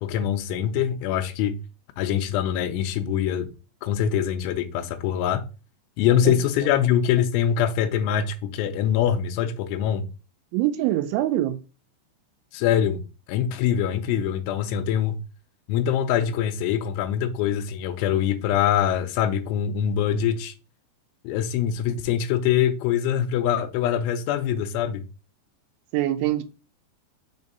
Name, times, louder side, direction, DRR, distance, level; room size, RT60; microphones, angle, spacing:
voice 1, 0.0-1.6 2.0-3.5 3.8-5.4 6.0-10.1 12.5-13.0 13.3-15.2 15.7-20.5 21.2-25.0, left 9 dB, 90° left, 3.1 m, -24 dB
voice 2, 10.5-11.6 25.9-26.4, right 14 dB, 85° right, 3.1 m, -23 dB
7.2 x 2.7 x 5.3 m
omnidirectional pair, 5.4 m